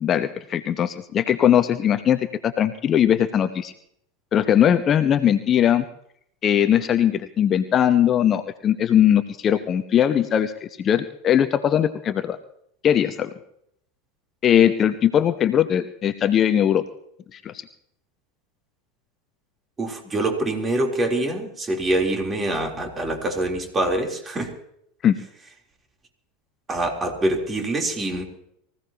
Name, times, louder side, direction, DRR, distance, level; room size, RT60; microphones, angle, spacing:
voice 1, 0.0-3.7 4.3-5.8 6.4-10.5 10.8-12.4 12.8-13.3 14.4-16.8 17.3-17.6 25.0-25.2, left 9 dB, 35° left, 10 dB, 0.9 m, -20 dB
voice 2, 19.8-24.5 26.7-28.2, right 1 dB, 20° right, 2 dB, 3.6 m, -25 dB
24.0 x 16.0 x 2.9 m, 0.72 s
hypercardioid pair, 85°, 0 cm